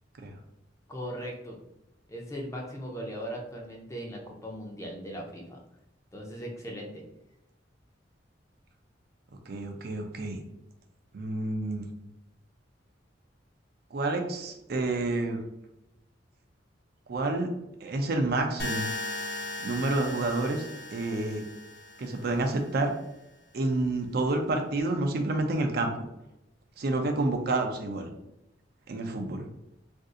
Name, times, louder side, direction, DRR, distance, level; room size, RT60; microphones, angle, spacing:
voice 1, 0.9-1.6 2.1-5.6 6.1-7.0, equal, 15° left, -1 dB, 0.5 m, -38 dB
voice 2, 9.5-10.4 11.1-11.9 13.9-15.4 17.1-17.5 17.8-18.9 19.6-21.4 22.0-22.9 23.5-26.0 26.8-28.1 28.9-29.5, right 2 dB, 55° right, 4 dB, 0.4 m, -29 dB
sound 1, 18.6-22.6, left 2 dB, 55° left, 0.8 m, -37 dB
2.6 x 2.4 x 3.7 m, 0.87 s
head